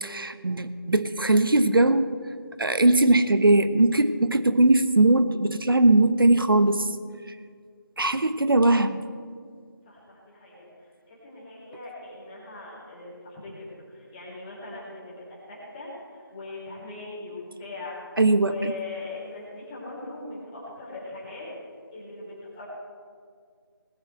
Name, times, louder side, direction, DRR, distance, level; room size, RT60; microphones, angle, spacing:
voice 1, 0.0-2.1 2.6-6.9 8.0-9.0 18.2-18.7, right 2 dB, 70° right, 11 dB, 1.1 m, -20 dB
voice 2, 9.9-21.5 21.9-22.6, left 3 dB, 15° left, -6 dB, 3.6 m, -40 dB
19.5 x 6.7 x 7.7 m, 2.1 s
figure-of-eight pair, 170°, 12 cm